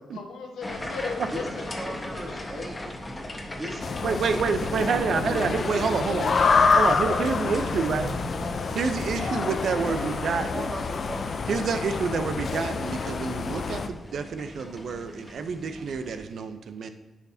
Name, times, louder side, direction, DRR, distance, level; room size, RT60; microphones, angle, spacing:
voice 1, 0.1-2.7 6.9-8.8 9.1-9.3, left 4 dB, 85° left, 2 dB, 1.1 m, -39 dB
sound 1, 0.6-16.2, left 1 dB, 20° left, 1.3 m, -39 dB
voice 2, 1.3-2.7 3.5-4.9 5.1-6.3 9.8-11.3, right 1 dB, 30° right, -3 dB, 2.6 m, -38 dB
sound 2, 3.8-13.9, left 4 dB, 55° left, 0.5 m, -27 dB
voice 3, 4.0-6.3 6.7-8.1 8.8-10.7 11.5-16.9, right 5 dB, 70° right, 9 dB, 0.6 m, -28 dB
10.0 x 5.8 x 2.8 m, 1.1 s
cardioid pair, 70°, 0 cm